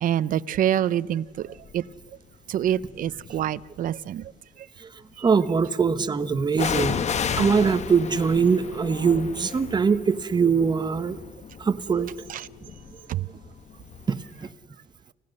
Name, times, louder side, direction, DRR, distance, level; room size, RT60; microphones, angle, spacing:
voice 1, 0.0-1.2 1.7-1.8 2.5-4.2 13.1-13.2, right 11 dB, 55° right, 0.6 m, -25 dB
sound 1, 1.6-1.9 2.7-3.6 6.5-14.2 14.4-14.5, left 7 dB, 40° left, 1.1 m, -33 dB
voice 2, 5.2-7.0 7.4-11.2 11.6-12.1 14.1-14.2, right 5 dB, 25° right, 1.1 m, -22 dB
29.5 x 16.5 x 6.6 m
cardioid pair, 110°, 17 cm